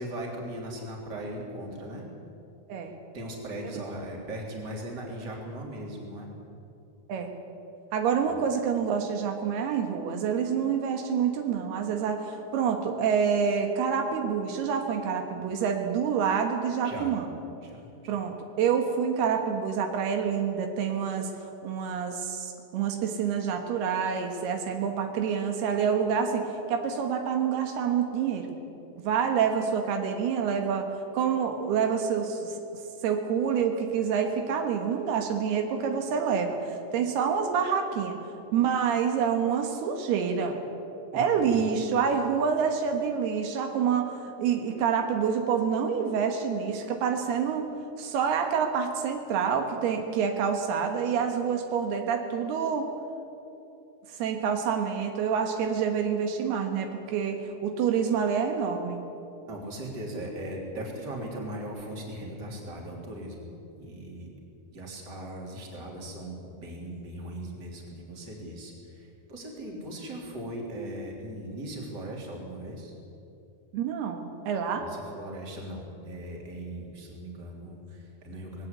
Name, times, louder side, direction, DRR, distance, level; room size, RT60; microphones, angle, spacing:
voice 1, 0.0-2.1 3.1-6.3 8.2-8.4 16.8-17.1 17.6-18.2 41.1-41.7 59.5-63.5 63.8-64.3 64.7-72.9 74.8-78.7, right 1 dB, 25° right, -1 dB, 3.5 m, -39 dB
voice 2, 7.9-17.3 18.1-28.5 29.0-30.9 31.1-32.5 33.0-38.2 38.5-40.6 41.1-47.7 48.0-52.9 54.2-59.0 73.7-74.9, right 7 dB, 80° right, 4 dB, 3.4 m, -27 dB
20.0 x 17.5 x 8.3 m, 2.8 s
omnidirectional pair, 4.5 m